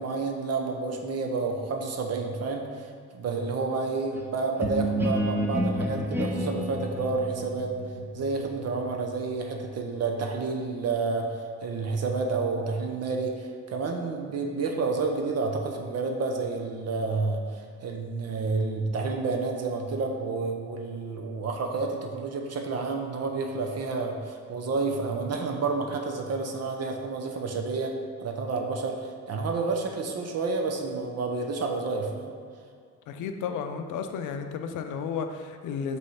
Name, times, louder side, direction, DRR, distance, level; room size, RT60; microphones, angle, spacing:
voice 1, 0.0-7.7 8.1-27.9 28.2-32.3, right 3 dB, 55° right, 2 dB, 0.8 m, -30 dB
sound 1, 4.6-10.2, right 1 dB, 5° right, 0.8 m, -31 dB
voice 2, 33.1-36.0, left 6 dB, 80° left, 7 dB, 0.5 m, -33 dB
5.3 x 3.2 x 5.5 m, 2.1 s
cardioid pair, 90°, 30 cm